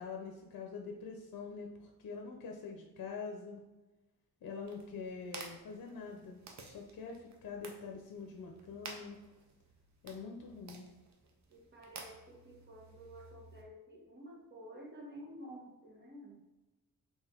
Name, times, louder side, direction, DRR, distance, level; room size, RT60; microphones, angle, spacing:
voice 1, 0.0-3.6 4.4-9.2 10.0-10.9, left 5 dB, 70° left, 1 dB, 0.7 m, -45 dB
sound 1, 4.6-13.6, right 3 dB, 50° right, 0.7 m, -53 dB
voice 2, 11.5-16.4, equal, 30° right, -3 dB, 1.2 m, -51 dB
3.9 x 2.8 x 4.4 m, 1.1 s
wide cardioid pair, 110°, 36 cm